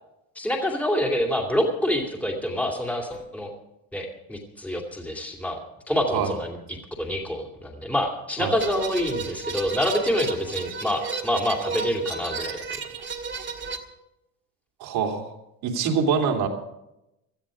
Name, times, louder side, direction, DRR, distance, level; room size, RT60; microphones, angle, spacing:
voice 1, 0.4-3.5 3.9-5.6 5.9-12.6, equal, 5° left, -1 dB, 2.4 m, -27 dB
sound 1, 8.6-13.8, right 5 dB, 30° right, 1.8 m, -33 dB
voice 2, 14.8-15.3 15.6-16.5, right 6 dB, 70° right, 2 dB, 3.1 m, -24 dB
17.5 x 13.0 x 5.0 m, 0.88 s
cardioid pair, 130°, 39 cm